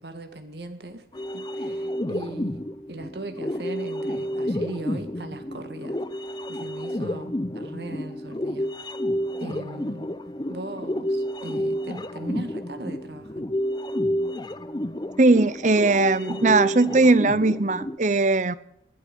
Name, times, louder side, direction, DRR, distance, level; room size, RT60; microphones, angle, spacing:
voice 1, 0.0-2.6 2.9-6.0 6.5-8.7 9.4-10.1 10.5-13.5, right 1 dB, 70° right, 8 dB, 1.8 m, -38 dB
sound 1, 1.1-18.0, equal, 25° left, 0.7 m, -30 dB
voice 2, 15.2-18.6, right 3 dB, 45° right, 17 dB, 0.8 m, -19 dB
20.5 x 12.0 x 5.4 m, 0.75 s
head